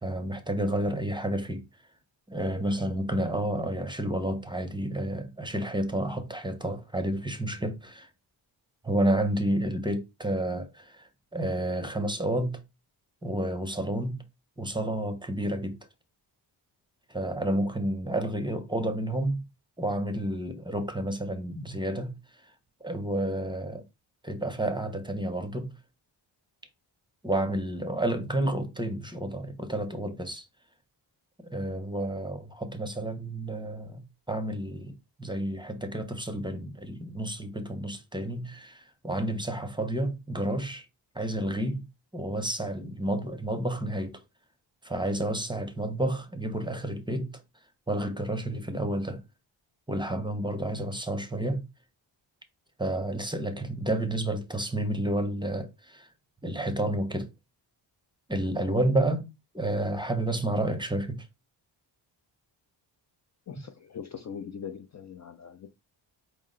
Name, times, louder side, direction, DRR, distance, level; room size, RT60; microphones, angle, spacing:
voice 1, 0.0-1.7 2.3-8.1 8.8-12.6 13.2-14.2 14.6-15.8 17.1-19.4 19.8-22.2 22.8-23.8 24.2-25.8 27.2-30.4 31.4-40.9 41.1-41.8 42.1-44.2 44.8-47.4 47.9-49.2 49.9-51.7 52.8-56.1 56.4-57.3 58.3-61.3, right 1 dB, 10° right, 0.6 m, -30 dB
voice 2, 63.5-65.7, left 7 dB, 40° left, 0.4 m, -41 dB
4.7 x 2.1 x 3.7 m
cardioid pair, 85°, 48 cm